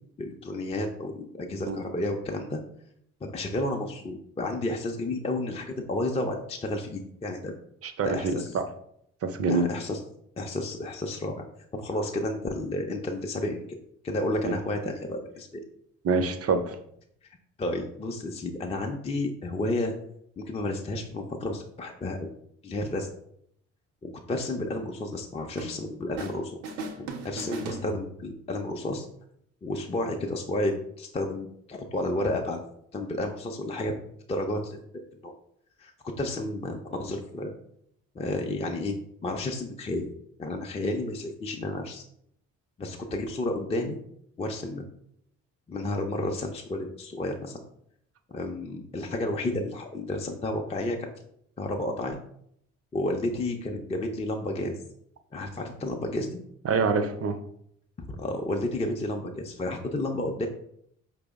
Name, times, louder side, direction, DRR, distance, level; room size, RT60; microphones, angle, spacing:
voice 1, 0.2-2.6 3.2-7.5 8.0-8.6 9.5-10.0 10.4-11.4 11.7-13.6 14.0-15.6 17.6-19.9 20.4-22.3 22.6-23.1 24.0-26.6 27.0-29.1 29.6-32.6 32.9-33.9 34.3-35.3 35.8-35.9 36.2-37.5 38.2-39.0 39.2-40.1 40.4-42.0 42.8-44.0 44.4-44.9 45.7-47.6 48.3-51.1 51.6-52.2 52.9-54.8 55.3-56.4 58.1-60.5, left 1 dB, 15° left, 2 dB, 0.5 m, -31 dB
voice 2, 7.8-8.6 9.2-9.7 14.4-14.5 16.0-16.8 56.6-57.4, right 4 dB, 40° right, 8 dB, 0.5 m, -26 dB
sound 1, 25.6-26.4 26.6-28.4, right 2 dB, 80° right, 0.6 m, -38 dB
4.8 x 2.0 x 3.5 m, 0.71 s
hypercardioid pair, 50°, 37 cm